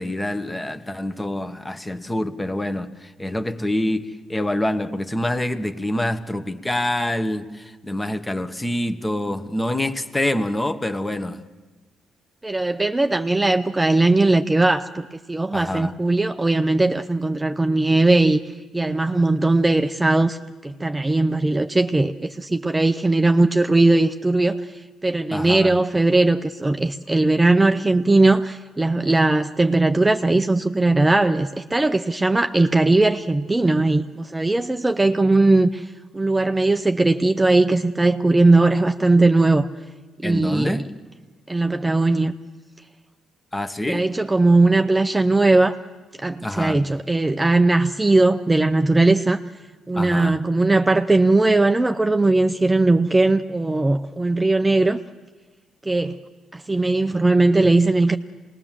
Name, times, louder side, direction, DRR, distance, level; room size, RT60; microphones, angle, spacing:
voice 1, 0.0-11.4 15.5-16.0 25.3-25.8 40.2-40.9 43.5-44.0 46.4-46.9 50.0-50.4 57.6-57.7, left 1 dB, 15° left, 1.3 m, -26 dB
voice 2, 12.4-18.4 18.7-24.6 25.0-35.8 36.1-39.7 40.2-40.8 41.5-42.3 43.9-45.8 46.2-49.4 49.9-55.0 55.9-56.2 56.5-58.2, right 2 dB, 15° right, 0.7 m, -19 dB
26.0 x 20.0 x 7.5 m
cardioid pair, 90°, 0 cm